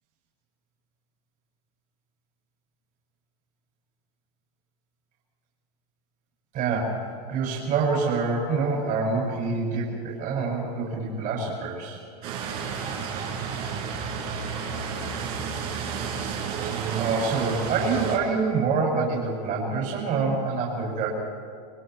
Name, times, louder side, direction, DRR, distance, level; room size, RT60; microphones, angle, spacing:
voice 1, 6.5-7.0 7.3-12.0 17.0-21.1, right 4 dB, 40° right, -4 dB, 7.3 m, -26 dB
sound 1, 12.2-18.2, right 6 dB, 65° right, 6.6 m, -31 dB
28.5 x 24.5 x 4.8 m, 2.1 s
supercardioid pair, 125°, 21 cm